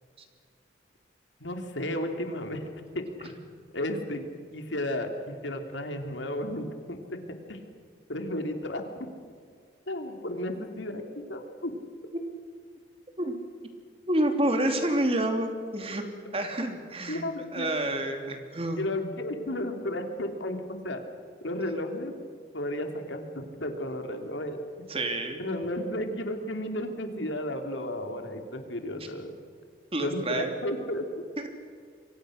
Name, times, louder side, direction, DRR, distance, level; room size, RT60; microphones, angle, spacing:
voice 1, 1.4-3.5 3.7-4.3 4.5-7.2 7.5-7.6 8.1-8.8 9.9-11.7 17.1-17.7 18.8-21.0 21.4-22.1 22.5-24.9 25.4-29.3 30.0-31.1, left 1 dB, 90° left, 5 dB, 3.1 m, -33 dB
voice 2, 14.1-16.0 16.3-17.2 17.5-18.8 24.9-25.4 29.9-30.5 31.4-31.5, right 1 dB, 30° right, 5 dB, 2.9 m, -28 dB
28.0 x 23.5 x 6.6 m, 2.1 s
head